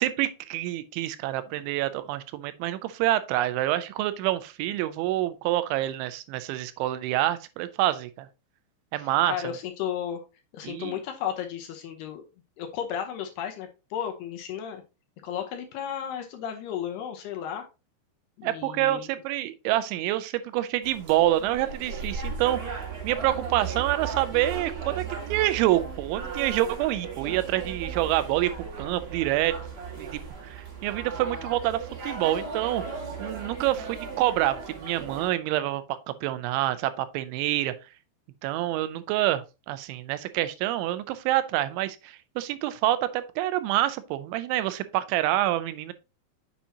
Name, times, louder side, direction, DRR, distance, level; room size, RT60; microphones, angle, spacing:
voice 1, 0.0-8.3 8.9-9.5 10.6-11.0 18.4-22.8 23.0-29.6 30.0-32.8 33.2-37.7 38.4-45.9, right 14 dB, 85° right, 3.0 m, -27 dB
voice 2, 9.0-10.2 10.5-12.2 12.6-14.8 15.2-17.7 18.4-19.1, left 9 dB, 75° left, 2.6 m, -34 dB
sound 1, 20.8-35.3, right 5 dB, 45° right, 2.7 m, -36 dB
7.5 x 7.1 x 2.8 m
omnidirectional pair, 5.3 m